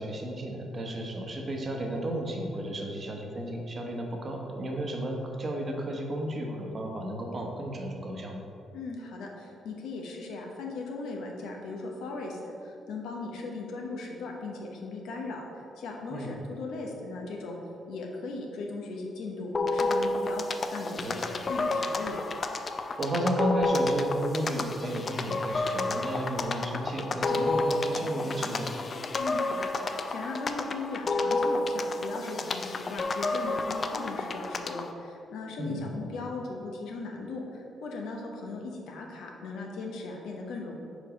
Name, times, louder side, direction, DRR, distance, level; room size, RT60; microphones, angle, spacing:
voice 1, 0.0-8.4 16.1-16.3 21.0-21.1 23.0-28.7 31.7-31.8 35.6-35.8, right 1 dB, 45° right, 1 dB, 1.1 m, -33 dB
voice 2, 8.7-15.4 15.8-17.6 17.9-22.2 29.2-40.8, left 3 dB, 85° left, 0 dB, 1.0 m, -38 dB
sound 1, 19.5-34.9, left 2 dB, 45° left, 0.4 m, -30 dB
5.0 x 4.6 x 5.0 m, 2.6 s
cardioid pair, 75°, 0 cm